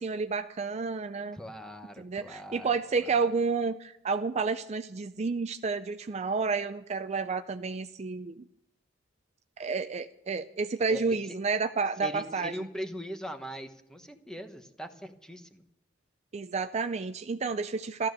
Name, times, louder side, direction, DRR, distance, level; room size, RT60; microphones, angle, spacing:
voice 1, 0.0-1.4 2.0-8.5 9.6-12.7 16.3-18.1, right 4 dB, 35° right, 9 dB, 0.4 m, -30 dB
voice 2, 1.3-2.7 3.0-3.2 10.9-11.4 12.0-15.6, equal, 5° left, 7 dB, 1.1 m, -41 dB
14.5 x 13.0 x 6.6 m, 0.81 s
head